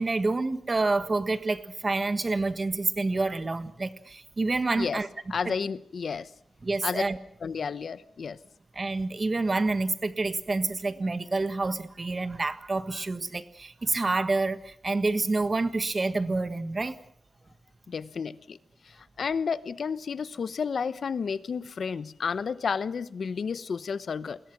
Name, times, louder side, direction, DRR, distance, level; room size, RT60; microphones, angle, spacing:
voice 1, 0.0-5.1 5.4-5.5 6.6-7.2 8.7-17.0, right 3 dB, 30° right, 11 dB, 1.5 m, -28 dB
voice 2, 5.3-6.3 6.8-7.0 7.4-8.4 17.9-18.6 18.9-24.4, left 6 dB, 60° left, 15 dB, 0.9 m, -31 dB
29.0 x 21.5 x 6.1 m, 0.67 s
wide cardioid pair, 135°, 0 cm